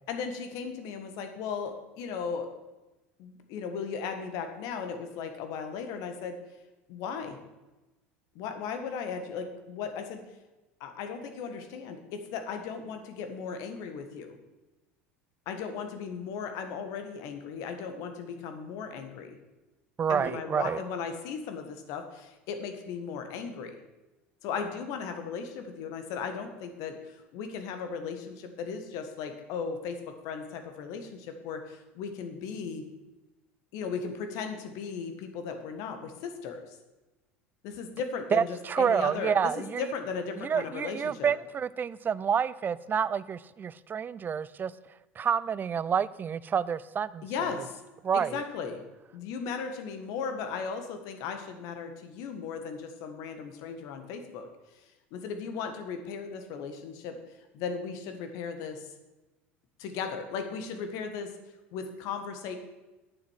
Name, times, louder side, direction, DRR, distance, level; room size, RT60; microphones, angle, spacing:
voice 1, 0.1-2.5 3.2-6.4 6.9-7.4 8.3-10.2 10.8-14.3 15.4-19.4 20.1-23.7 24.4-30.0 30.2-32.8 33.7-36.6 37.6-41.3 47.2-47.8 48.1-48.8 49.1-54.5 55.1-57.2 57.5-58.9 59.8-61.3 61.7-62.6, left 6 dB, 60° left, 6 dB, 1.6 m, -36 dB
voice 2, 20.0-20.8 38.3-39.8 40.4-44.7 45.2-47.3 47.5-47.6 48.0-48.4, right 7 dB, 30° right, 18 dB, 0.5 m, -28 dB
8.9 x 7.1 x 6.4 m, 1.1 s
hypercardioid pair, 75°, 7 cm